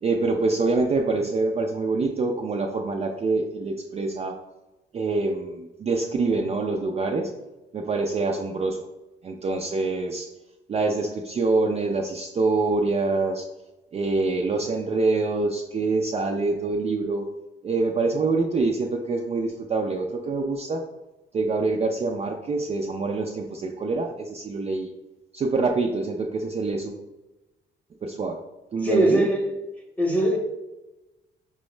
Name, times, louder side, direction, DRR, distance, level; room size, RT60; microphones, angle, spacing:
voice 1, 0.0-4.3 4.9-7.3 7.7-8.8 9.2-10.3 10.7-13.4 13.9-17.3 17.6-20.8 21.3-24.9 25.3-27.0 28.0-28.4 28.7-29.3, right 3 dB, 30° right, 1 dB, 0.4 m, -25 dB
voice 2, 28.8-29.5 30.0-30.4, right 1 dB, 5° left, 0 dB, 0.8 m, -21 dB
4.5 x 2.1 x 3.2 m, 1.0 s
cardioid pair, 90°, 20 cm